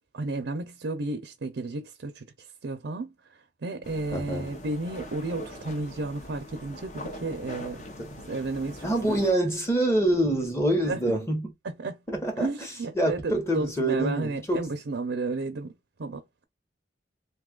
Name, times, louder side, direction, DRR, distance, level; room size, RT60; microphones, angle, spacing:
voice 1, 0.1-7.8 8.3-9.2 10.9-11.3 11.6-11.9 12.4-15.7 16.0-16.4, right 3 dB, 75° right, 0.5 m, -33 dB
sound 1, 3.8-9.3, left 1 dB, 40° left, 0.6 m, -42 dB
voice 2, 4.1-4.5 8.0-8.2 8.8-11.5 12.1-12.7 12.9-14.7, right 1 dB, 15° left, 0.9 m, -26 dB
2.7 x 2.3 x 3.7 m
head